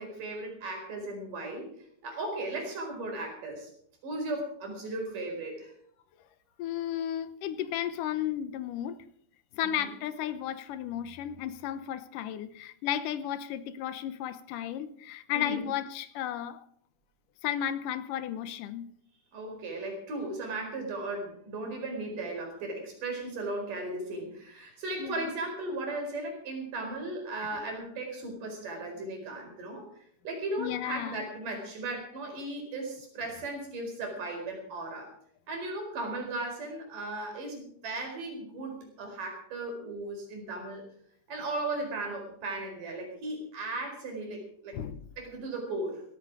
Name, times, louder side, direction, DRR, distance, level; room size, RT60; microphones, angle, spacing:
voice 1, 0.0-1.8 2.0-3.7 4.0-5.7 9.6-9.9 15.3-15.7 19.3-35.1 35.5-40.9 41.3-44.8 45.2-46.0, right 2 dB, 85° right, 6.0 m, -36 dB
voice 2, 6.6-9.0 9.5-16.6 17.4-18.9 25.0-25.3 27.5-27.6 30.6-31.2 44.7-45.1, left 11 dB, 90° left, 2.6 m, -34 dB
16.5 x 14.5 x 4.8 m
omnidirectional pair, 3.6 m